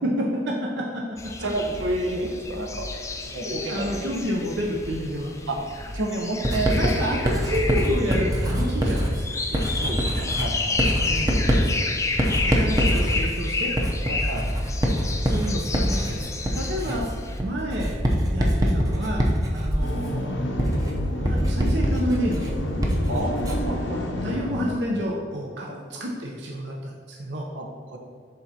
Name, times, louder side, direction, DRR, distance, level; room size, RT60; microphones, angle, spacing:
voice 1, 0.2-0.8 3.4-5.3 6.7-9.4 11.0-11.4 12.4-13.7 15.2-20.4 21.1-22.5 24.2-26.9 27.2-27.5, equal, 70° right, -2 dB, 0.7 m, -29 dB
sound 1, 1.2-17.4, left 3 dB, 15° left, 0.4 m, -31 dB
voice 2, 1.4-2.9 3.2-4.2 5.5-5.6 5.9-7.2 9.5-10.8 14.1-14.4 23.1-24.1 25.7-25.8 27.5-27.7 27.9-28.0, right 1 dB, 90° right, 1 dB, 1.0 m, -30 dB
Writing, 6.4-23.8, equal, 20° right, 0.7 m, -24 dB
sound 2, 19.8-24.8, left 1 dB, 90° left, 0.8 m, -30 dB
11.5 x 3.9 x 2.9 m, 2.1 s
head